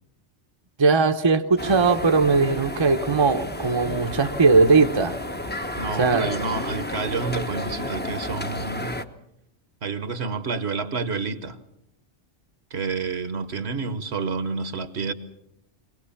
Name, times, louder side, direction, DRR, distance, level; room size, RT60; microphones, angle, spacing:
voice 1, 0.8-5.2 6.0-6.3, right 4 dB, 25° right, 7 dB, 0.8 m, -19 dB
sound 1, 1.6-9.0, left 1 dB, 10° left, 0.8 m, -32 dB
voice 2, 5.8-8.9 9.8-11.6 12.7-15.1, right 4 dB, 65° right, 12 dB, 1.4 m, -29 dB
24.0 x 18.0 x 7.0 m, 0.83 s
omnidirectional pair, 1.2 m